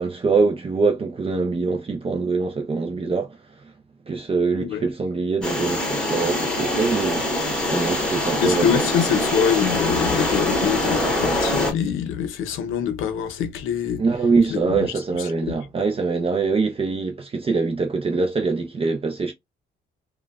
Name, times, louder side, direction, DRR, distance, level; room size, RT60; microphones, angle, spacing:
voice 1, 0.0-3.7 4.1-7.4 7.7-8.8 10.0-10.1 14.0-19.3, right 4 dB, 30° right, 0.5 m, -23 dB
sound 1, 5.4-11.7, left 1 dB, 5° left, 1.2 m, -24 dB
voice 2, 8.4-14.0 14.5-14.9 15.4-15.6, left 8 dB, 90° left, 0.7 m, -24 dB
3.0 x 2.2 x 2.2 m
cardioid pair, 90°, 20 cm